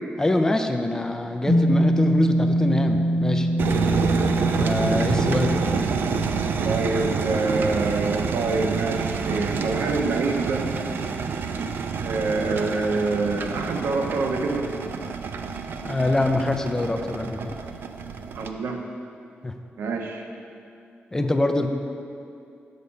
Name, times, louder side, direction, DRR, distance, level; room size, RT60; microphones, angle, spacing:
voice 1, 0.2-3.5 4.5-5.6 15.8-17.6 19.4-19.5 21.1-21.7, left 2 dB, 15° left, 6 dB, 0.4 m, -24 dB
sound 1, 1.5-9.9, equal, 15° right, 1.3 m, -25 dB
sound 2, 3.6-18.5, right 5 dB, 65° right, 0.4 m, -28 dB
voice 2, 6.6-10.7 12.0-14.7 18.3-18.8 19.8-20.2, right 3 dB, 85° right, 3 dB, 0.8 m, -26 dB
6.8 x 6.5 x 5.3 m, 2.5 s
wide cardioid pair, 155°, 4 cm